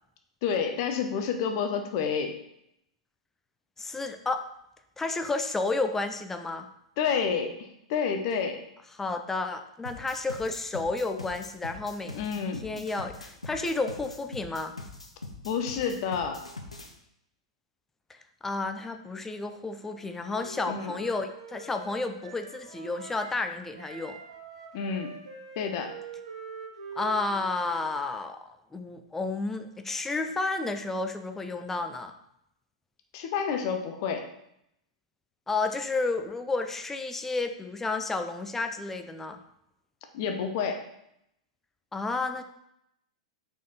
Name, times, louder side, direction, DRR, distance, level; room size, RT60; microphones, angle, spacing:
voice 1, 0.4-2.3 7.0-8.6 12.1-12.8 15.4-16.4 20.7-20.9 24.7-25.1 25.6-26.0 33.1-34.3 40.1-40.8, left 6 dB, 45° left, 6 dB, 0.8 m, -29 dB
voice 2, 3.8-4.4 5.0-6.7 9.0-12.2 12.6-14.7 18.4-24.2 27.0-32.1 35.5-39.4 41.9-42.4, left 3 dB, 10° left, 7 dB, 0.5 m, -31 dB
sound 1, 9.8-16.9, left 2 dB, 85° left, 0.8 m, -42 dB
Wind instrument woodwind instrument, 19.8-23.4 23.8-27.9, right 4 dB, 70° right, 1.1 m, -45 dB
5.8 x 4.4 x 4.3 m, 0.78 s
figure-of-eight pair, 100°, 3 cm